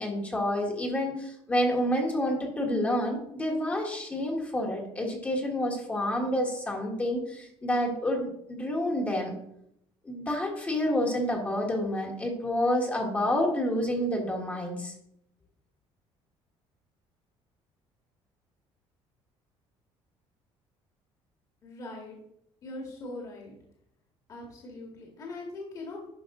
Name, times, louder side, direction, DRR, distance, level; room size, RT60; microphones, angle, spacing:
voice 1, 0.0-9.3 10.0-14.9, left 1 dB, 15° left, 0 dB, 1.5 m, -29 dB
voice 2, 21.6-22.2 22.6-23.5 24.3-26.1, left 2 dB, 35° left, -1 dB, 1.9 m, -41 dB
11.0 x 5.3 x 3.8 m, 0.75 s
cardioid pair, 180°, 11 cm